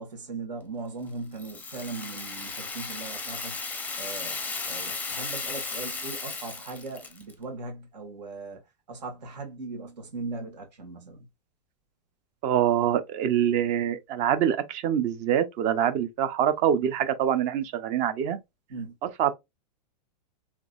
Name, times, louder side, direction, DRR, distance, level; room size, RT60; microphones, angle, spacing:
voice 1, 0.0-3.6 4.0-8.6 8.9-11.3 18.7-19.0, right 3 dB, 80° right, 1.7 m, -39 dB
Rattle (instrument), 1.4-7.3, left 4 dB, 10° left, 0.6 m, -35 dB
voice 2, 12.4-18.4 19.2-19.4, right 10 dB, 35° right, 0.6 m, -25 dB
3.7 x 3.0 x 2.4 m
hypercardioid pair, 125°, 21 cm